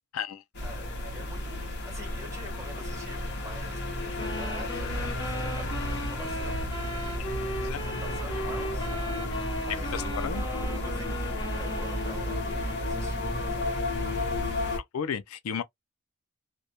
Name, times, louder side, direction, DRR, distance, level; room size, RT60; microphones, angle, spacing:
sound 1, 0.5-14.8, left 1 dB, 55° left, 0.8 m, -32 dB
voice 1, 0.6-6.7 7.3-13.9 14.4-14.6, equal, 15° right, 1.3 m, -47 dB
sound 2, 4.2-12.5, equal, 20° left, 0.6 m, -38 dB
voice 2, 9.9-10.4 14.9-15.6, left 7 dB, 85° left, 0.4 m, -33 dB
2.2 x 2.2 x 2.7 m
head